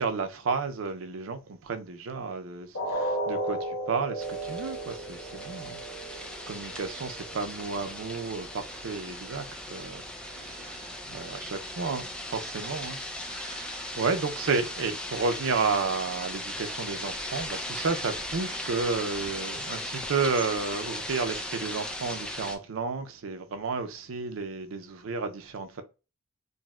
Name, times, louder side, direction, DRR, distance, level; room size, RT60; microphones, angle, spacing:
voice 1, 0.0-25.8, right 4 dB, 75° right, 0.5 m, -32 dB
sound 1, 2.7-8.7 9.1-9.3 9.8-9.9, right 1 dB, 85° left, 1.3 m, -35 dB
sound 2, 4.2-22.6, left 1 dB, 5° left, 0.4 m, -38 dB
3.8 x 2.1 x 2.3 m
head